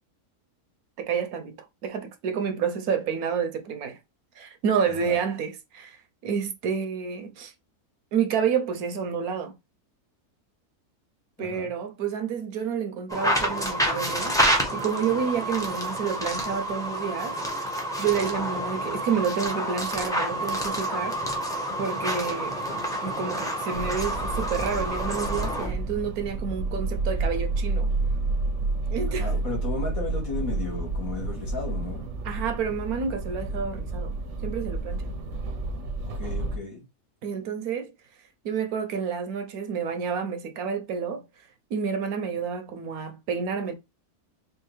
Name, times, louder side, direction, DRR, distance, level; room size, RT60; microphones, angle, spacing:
voice 1, 1.0-1.6 1.8-4.0 4.4-7.5 8.1-9.5 11.4-17.4 18.0-21.2 21.8-22.5 23.0-27.9 28.9-29.3 32.2-34.2 34.4-35.1 37.2-37.9 38.4-41.2 41.7-43.7, right 6 dB, 75° right, 1.2 m, -29 dB
voice 2, 11.4-11.7 29.2-32.1 36.2-36.8, left 3 dB, 60° left, 1.9 m, -34 dB
sound 1, 13.1-25.7, equal, 5° left, 0.6 m, -28 dB
sound 2, 23.7-36.6, right 3 dB, 60° right, 0.9 m, -30 dB
4.5 x 2.5 x 3.2 m
omnidirectional pair, 1.6 m